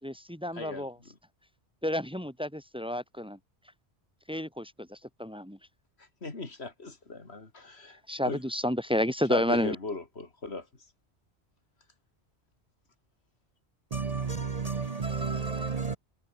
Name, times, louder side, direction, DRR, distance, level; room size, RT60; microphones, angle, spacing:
voice 1, 0.0-1.0 1.8-3.4 4.3-5.6 8.1-9.8, equal, 5° right, 2.2 m, -30 dB
voice 2, 6.0-8.4 9.3-10.7, left 3 dB, 65° left, 3.1 m, -37 dB
voice 3, 13.9-16.0, right 5 dB, 40° right, 0.8 m, -31 dB
omnidirectional pair, 1.2 m